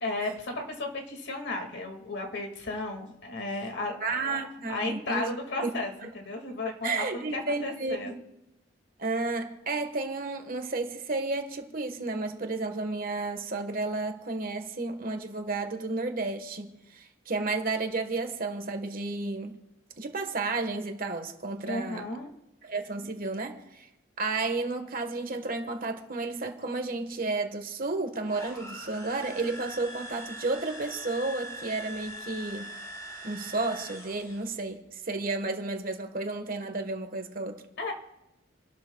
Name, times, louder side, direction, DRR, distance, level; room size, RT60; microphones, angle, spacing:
voice 1, 0.0-4.4 4.7-8.1 21.7-22.3 37.8-37.9, left 2 dB, 65° left, 2.2 m, -34 dB
voice 2, 4.0-5.2 5.6-5.7 6.8-8.1 9.0-19.6 20.0-22.1 22.6-23.9 24.2-32.7 33.2-37.6, right 3 dB, 50° right, 1.4 m, -32 dB
sound 1, 28.2-34.6, equal, 20° left, 4.9 m, -42 dB
29.5 x 12.5 x 2.4 m
head